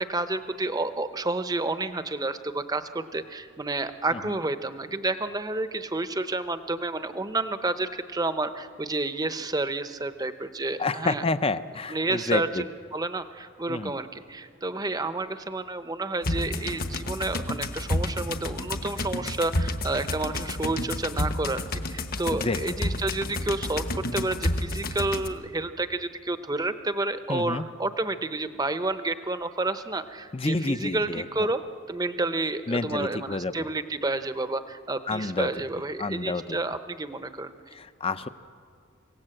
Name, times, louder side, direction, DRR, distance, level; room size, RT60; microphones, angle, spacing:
voice 1, 0.0-11.2 11.9-21.6 21.9-31.6 31.9-37.5, right 2 dB, 15° right, 10 dB, 0.7 m, -30 dB
voice 2, 10.8-12.6 13.7-13.9 22.3-22.8 27.3-27.6 30.3-31.2 32.7-33.5 35.1-35.5 36.0-36.6 37.7-38.3, left 3 dB, 25° left, 12 dB, 0.5 m, -29 dB
sound 1, 16.2-25.3, left 1 dB, 45° left, 1.1 m, -30 dB
26.5 x 17.5 x 7.8 m, 2.4 s
head